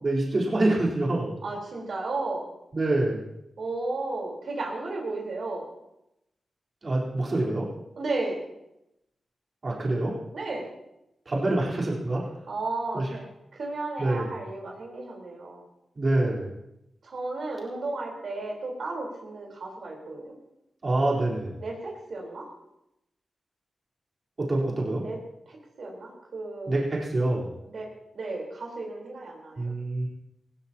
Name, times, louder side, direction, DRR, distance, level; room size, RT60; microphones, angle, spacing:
voice 1, 0.0-1.4 2.7-3.2 6.8-7.7 9.6-10.1 11.3-12.2 12.9-13.0 14.0-14.3 16.0-16.5 20.8-21.5 24.4-25.0 26.7-27.5 29.6-30.1, right 2 dB, 45° right, -4 dB, 4.0 m, -26 dB
voice 2, 1.4-2.5 3.6-5.7 8.0-8.4 10.3-10.7 12.5-15.6 17.0-20.3 21.6-22.5 25.0-25.2 25.5-26.7 27.7-27.9 28.1-29.7, right 2 dB, 70° right, -2 dB, 4.1 m, -34 dB
19.0 x 17.0 x 2.9 m, 0.85 s
cardioid pair, 85°, 0 cm